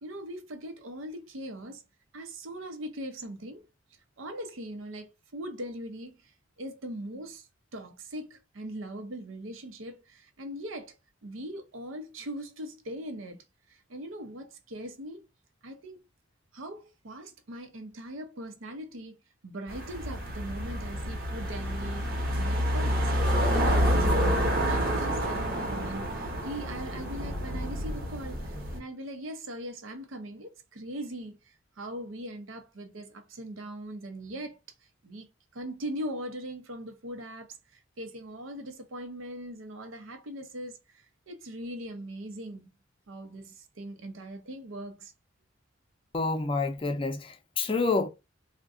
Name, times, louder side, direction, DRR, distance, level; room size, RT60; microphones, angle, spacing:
voice 1, 0.0-1.8 2.1-3.6 4.2-11.0 11.2-15.2 15.6-16.0 16.5-19.2 19.4-24.4 24.7-34.6 35.0-42.8 43.1-45.1, right 1 dB, 85° right, 0.7 m, -40 dB
sound 1, 19.7-28.8, equal, 50° right, 0.9 m, -28 dB
voice 2, 46.1-48.1, left 3 dB, 25° left, 0.5 m, -28 dB
2.4 x 2.1 x 3.6 m
head